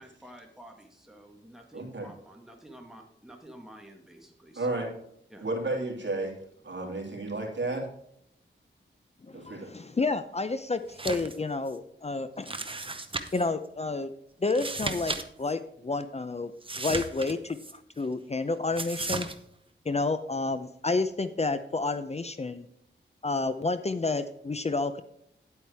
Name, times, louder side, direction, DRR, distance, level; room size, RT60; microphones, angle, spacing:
voice 1, 0.0-4.8 5.3-5.4, right 1 dB, ahead, 2 dB, 1.8 m, -50 dB
voice 2, 1.7-2.1 4.6-4.9 5.4-6.4 6.6-7.9 9.3-9.7, right 2 dB, 65° right, 0 dB, 2.8 m, -32 dB
voice 3, 9.3-12.6 13.3-14.1 14.4-16.5 16.8-17.6 18.0-19.3 19.9-22.7 23.2-25.0, left 3 dB, 30° left, 11 dB, 0.5 m, -30 dB
sound 1, 10.9-11.4 11.7-11.8 12.5-13.5 14.5-15.2 15.5-15.6 16.6-17.7 18.8-19.4, right 3 dB, 25° right, 0.9 m, -35 dB
10.0 x 8.7 x 3.5 m, 0.72 s
wide cardioid pair, 100°, 20 cm